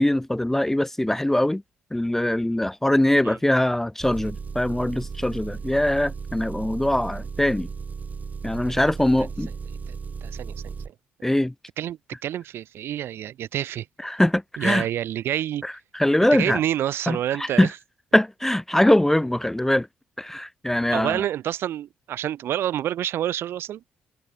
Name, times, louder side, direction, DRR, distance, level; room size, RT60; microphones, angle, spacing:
voice 1, 0.0-1.6 1.9-7.7 8.4-9.5 11.2-11.5 14.0-14.9 15.6-16.6 17.1-17.7 18.1-19.9 20.2-21.2, left 1 dB, 10° left, 0.5 m, -22 dB
Engine, 4.0-10.9, right 5 dB, 40° right, 1.5 m, -35 dB
voice 2, 10.2-10.7 11.8-13.8 14.6-15.6 16.3-17.7 20.9-23.8, right 11 dB, 70° right, 1.0 m, -28 dB
supercardioid pair, 60°, 4 cm